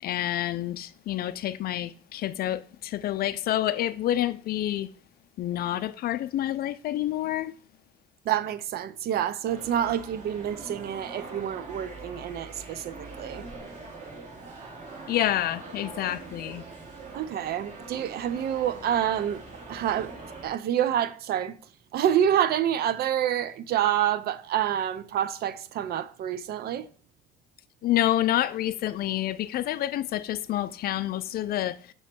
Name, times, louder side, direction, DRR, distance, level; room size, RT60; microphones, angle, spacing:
voice 1, 0.0-4.9 5.4-7.5 15.1-16.6 27.8-31.9, left 13 dB, 60° left, 0.5 m, -28 dB
voice 2, 8.2-13.5 17.1-19.4 19.7-20.1 20.4-21.6 21.9-26.9, right 10 dB, 60° right, 0.5 m, -27 dB
sound 1, 9.4-20.5, right 3 dB, 45° right, 2.4 m, -43 dB
6.3 x 3.1 x 5.8 m
cardioid pair, 95°, 18 cm